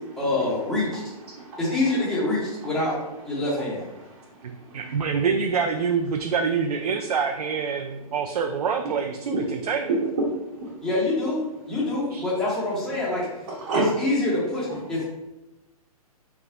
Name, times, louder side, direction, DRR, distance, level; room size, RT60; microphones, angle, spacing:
voice 1, 0.2-1.0 1.6-2.9 3.2-3.8 10.8-11.4 11.7-13.2 13.7-15.0, left 2 dB, ahead, -9 dB, 0.8 m, -25 dB
voice 2, 4.4-9.9 12.1-12.2, right 6 dB, 85° right, 4 dB, 0.4 m, -26 dB
voice 3, 9.9-10.7 13.7-13.9, right 2 dB, 50° right, -5 dB, 1.0 m, -27 dB
3.4 x 2.1 x 3.7 m, 0.96 s
hypercardioid pair, 140°, 19 cm